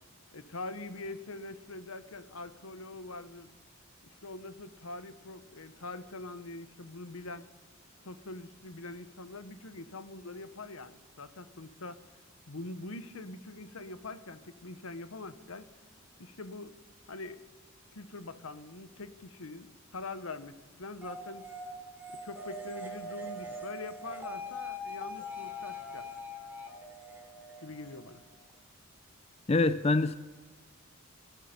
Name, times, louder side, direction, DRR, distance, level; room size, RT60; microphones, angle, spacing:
voice 1, 0.3-3.5 4.1-7.5 8.0-12.0 12.5-15.7 16.2-16.8 17.1-17.4 17.9-21.5 22.1-26.1 27.6-28.2, left 2 dB, 75° left, 1.0 m, -44 dB
sound 1, 21.0-28.5, left 1 dB, 10° right, 3.1 m, -42 dB
voice 2, 29.5-30.2, left 3 dB, 25° left, 0.4 m, -25 dB
20.0 x 13.0 x 5.2 m
head